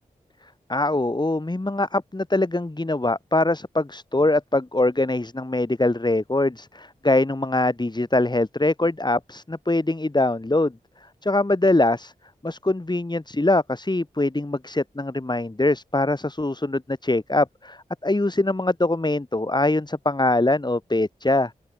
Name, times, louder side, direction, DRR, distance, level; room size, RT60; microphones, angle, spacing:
voice 1, 0.7-10.7 11.2-12.1 12.4-21.5, left 2 dB, 30° left, 2.9 m, -23 dB
open air
cardioid pair, 40°, 16 cm